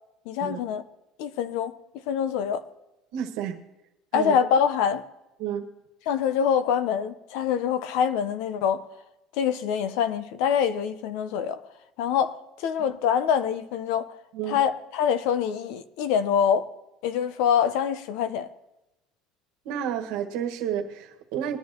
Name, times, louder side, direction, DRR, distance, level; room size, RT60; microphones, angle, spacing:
voice 1, 0.3-0.8 1.2-1.7 2.1-2.6 4.1-5.0 6.1-8.8 9.3-11.6 12.0-14.1 14.5-16.7 17.0-18.5, left 8 dB, 75° left, 0.9 m, -25 dB
voice 2, 3.1-3.6 4.1-4.3 5.4-5.6 14.3-14.6 19.6-21.6, right 9 dB, 70° right, 1.5 m, -30 dB
21.5 x 10.5 x 3.0 m
cardioid pair, 140°, 0 cm